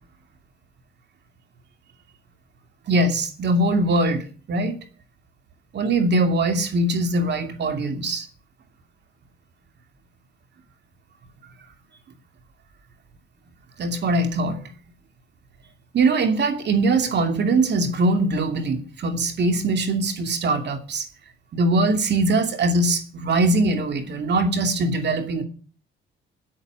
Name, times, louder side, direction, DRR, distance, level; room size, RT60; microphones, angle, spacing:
voice 1, 2.9-4.7 5.7-8.3 13.8-14.6 15.9-21.1 21.5-25.4, right 2 dB, 60° right, 6 dB, 2.7 m, -22 dB
9.7 x 8.9 x 9.1 m, 0.39 s
cardioid pair, 90°, 20 cm